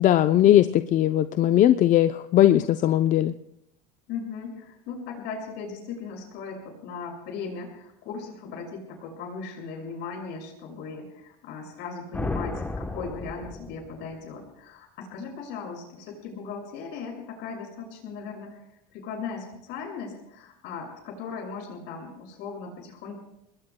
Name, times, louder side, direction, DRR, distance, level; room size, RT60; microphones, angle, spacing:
voice 1, 0.0-3.3, left 12 dB, 45° left, 10 dB, 0.6 m, -19 dB
voice 2, 4.1-18.6 18.9-23.2, left 5 dB, 65° left, 1 dB, 6.3 m, -38 dB
sound 1, 12.1-14.3, left 2 dB, 10° left, 1.0 m, -33 dB
28.5 x 20.5 x 2.2 m, 0.80 s
supercardioid pair, 115°, 19 cm